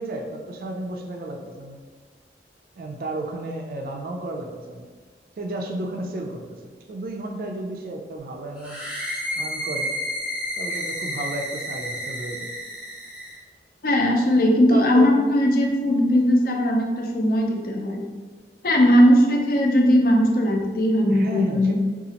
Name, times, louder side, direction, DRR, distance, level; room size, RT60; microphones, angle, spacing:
voice 1, 0.0-1.8 2.8-4.9 5.4-6.6 6.9-8.8 9.4-9.9 10.6-12.5 14.7-15.2 21.1-21.8, right 2 dB, 50° right, 2 dB, 0.3 m, -32 dB
sound 1, 8.6-13.4, equal, 5° right, 0.7 m, -31 dB
voice 2, 13.8-18.0 18.6-21.8, equal, 50° left, 1 dB, 0.5 m, -19 dB
3.9 x 2.4 x 2.7 m, 1.4 s
head